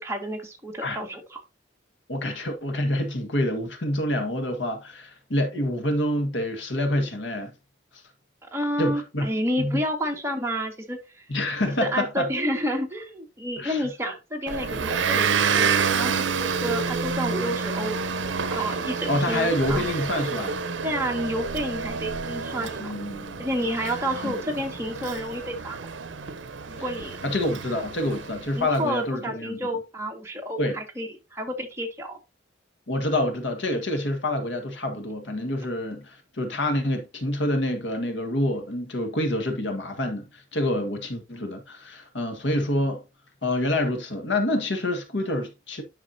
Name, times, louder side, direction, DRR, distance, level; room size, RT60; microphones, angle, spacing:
voice 1, 0.0-1.4 8.5-11.2 11.8-18.0 18.5-19.9 20.8-22.9 23.4-25.8 26.7-27.2 28.5-32.2, equal, 15° right, 1.8 m, -30 dB
voice 2, 2.1-7.5 8.8-9.3 9.6-9.8 11.3-12.3 13.6-13.9 19.1-20.6 22.5-23.5 24.1-24.4 27.2-29.7 30.6-30.8 32.9-43.0 43.4-45.8, left 1 dB, 65° left, 1.6 m, -27 dB
Motor vehicle (road) / Engine, 14.5-28.7, right 5 dB, 75° right, 0.7 m, -29 dB
10.5 x 5.9 x 2.8 m
head